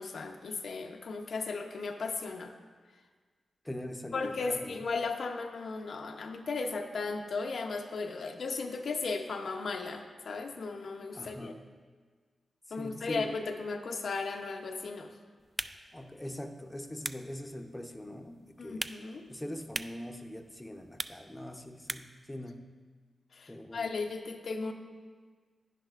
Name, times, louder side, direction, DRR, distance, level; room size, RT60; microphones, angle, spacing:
voice 1, 0.0-2.5 4.1-11.5 12.7-15.1 18.6-19.3 23.3-24.7, left 4 dB, 75° left, 4 dB, 0.6 m, -36 dB
voice 2, 3.6-4.8 11.1-11.7 12.7-13.4 15.9-18.9 19.3-22.8 23.5-23.9, left 1 dB, 15° left, 5 dB, 0.7 m, -42 dB
sound 1, 15.4-22.3, right 2 dB, 25° right, 0.3 m, -43 dB
10.0 x 10.0 x 2.4 m, 1.5 s
cardioid pair, 50°, 0 cm